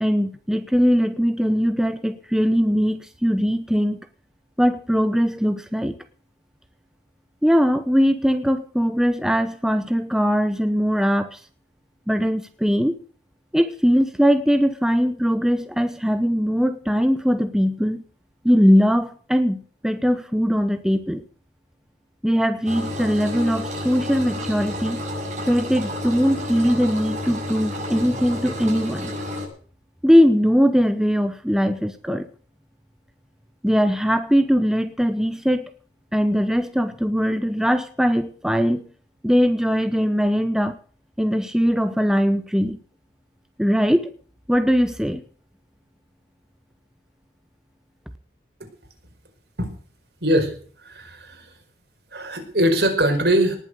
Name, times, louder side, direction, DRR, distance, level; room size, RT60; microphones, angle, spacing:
voice 1, 0.0-4.1 4.6-5.9 7.4-11.4 12.1-13.0 13.5-18.0 18.4-21.2 22.2-25.0 25.5-29.1 30.0-32.3 33.6-35.7 36.1-38.8 39.2-40.8 41.2-42.8 43.6-44.1 44.5-45.2, equal, 5° right, 0.8 m, -20 dB
Engine, 22.7-29.5, left 1 dB, 40° right, 6.5 m, -30 dB
voice 2, 50.2-50.5 50.8-51.5 52.1-53.6, right 1 dB, 65° right, 5.0 m, -21 dB
19.0 x 7.5 x 8.0 m
head